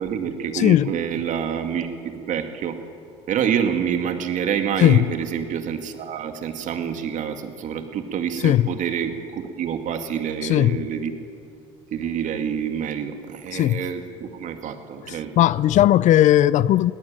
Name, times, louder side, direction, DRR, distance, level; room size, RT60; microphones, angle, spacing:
voice 1, 0.0-2.8 3.3-11.2 11.9-15.3, right 8 dB, 50° right, 2.2 m, -27 dB
voice 2, 0.5-0.9 4.8-5.0 8.4-8.6 10.4-10.8 13.5-13.9 15.0-16.9, left 13 dB, 50° left, 0.5 m, -17 dB
22.0 x 17.5 x 8.8 m
supercardioid pair, 85°, 16 cm